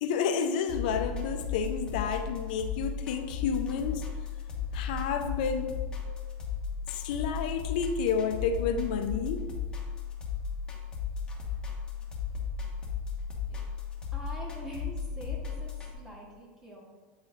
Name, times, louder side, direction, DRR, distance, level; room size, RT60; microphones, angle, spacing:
voice 1, 0.0-4.0 4.7-5.8 6.9-9.5, left 6 dB, 75° left, 6 dB, 0.5 m, -30 dB
sound 1, 0.7-15.9, left 6 dB, 20° left, 1.0 m, -35 dB
voice 2, 14.1-16.8, right 1 dB, 15° right, -2 dB, 1.4 m, -44 dB
8.8 x 3.1 x 3.6 m, 1.4 s
supercardioid pair, 135°, 5 cm